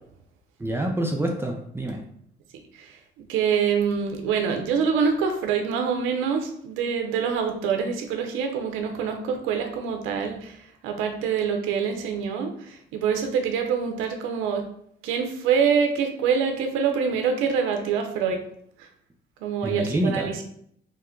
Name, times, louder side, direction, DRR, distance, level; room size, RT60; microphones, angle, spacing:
voice 1, 0.6-2.0 19.6-20.3, right 1 dB, 10° right, 1 dB, 0.4 m, -26 dB
voice 2, 2.7-14.6 15.0-18.4 18.8-18.9 19.4-20.4, right 6 dB, 85° right, 4 dB, 0.5 m, -25 dB
2.9 x 2.1 x 3.6 m, 0.68 s
supercardioid pair, 65°, 20 cm